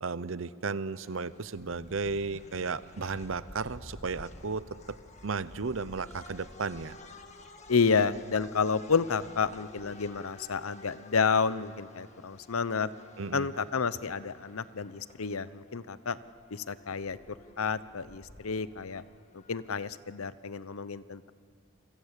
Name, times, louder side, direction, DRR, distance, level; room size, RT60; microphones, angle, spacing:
voice 1, 0.0-5.0 5.2-7.0 13.2-13.5, right 4 dB, 70° right, 16 dB, 0.8 m, -34 dB
sound 1, 0.9-19.8, left 2 dB, 35° left, 1.8 m, -52 dB
voice 2, 7.7-12.9 13.3-16.2 16.5-19.0 19.5-21.3, left 5 dB, 90° left, 16 dB, 0.8 m, -30 dB
28.0 x 23.5 x 8.3 m, 2.2 s
head